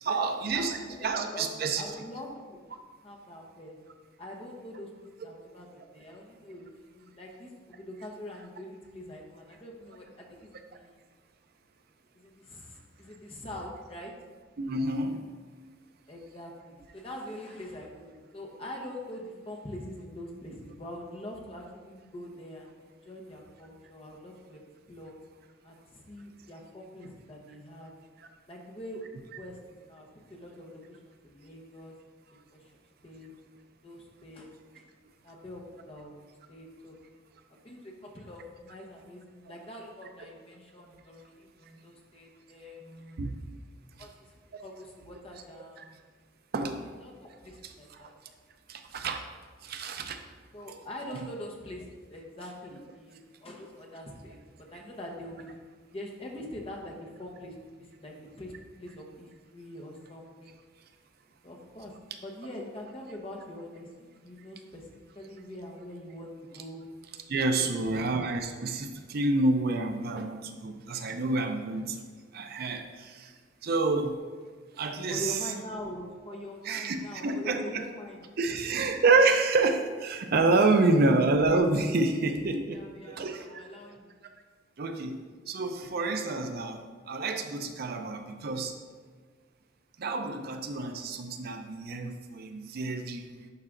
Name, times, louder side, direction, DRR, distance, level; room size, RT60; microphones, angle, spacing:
voice 1, 0.0-1.8 14.6-15.2 43.2-43.3 46.5-46.8 48.7-49.2 49.6-50.2 67.3-72.0 72.3-73.3 73.6-74.2 74.8-75.4 76.6-77.8 78.4-82.8 83.1-83.5 84.8-85.2 85.5-88.7 90.0-93.3, right 3 dB, 55° right, 6 dB, 0.5 m, -28 dB
voice 2, 0.5-1.5 1.8-2.6 3.0-3.8 4.2-4.9 5.2-11.0 12.1-14.1 16.1-24.6 24.9-25.2 25.6-27.9 28.5-30.8 31.2-31.9 32.5-32.7 33.0-33.3 33.8-34.5 34.8-34.9 35.2-36.1 36.5-37.0 37.6-43.2 44.0-46.0 46.8-48.1 50.5-54.4 54.7-55.6 55.9-58.5 58.8-60.5 61.4-61.9 62.2-64.9 65.1-66.9 67.6-68.1 75.1-78.8 82.7-84.1, left 1 dB, 30° left, -1 dB, 1.0 m, -44 dB
10.5 x 4.8 x 2.5 m, 1.5 s
head